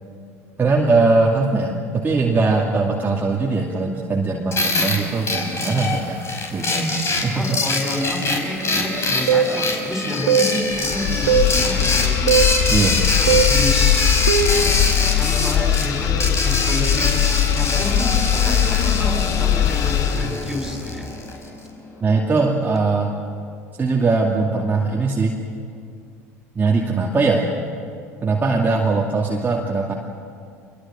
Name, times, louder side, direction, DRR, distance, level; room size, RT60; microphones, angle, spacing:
voice 1, 0.6-6.2 6.5-7.5 12.7-13.1 22.0-23.1 23.8-25.4 26.5-27.5 28.2-29.9, right 3 dB, 25° right, -2 dB, 2.5 m, -20 dB
sound 1, 4.5-21.5, left 3 dB, 35° left, 5.3 m, -24 dB
voice 2, 7.3-12.4 13.2-14.1 15.1-21.1, left 1 dB, ahead, 1 dB, 6.7 m, -29 dB
sound 2, 9.3-9.5 10.3-10.5 11.3-11.5 12.3-12.5 13.3-13.5 14.3-14.6, right 7 dB, 80° right, 1.5 m, -17 dB
sound 3, 10.7-20.4, left 10 dB, 50° left, 1.1 m, -20 dB
25.5 x 22.0 x 7.7 m, 2.3 s
hypercardioid pair, 70°, 8 cm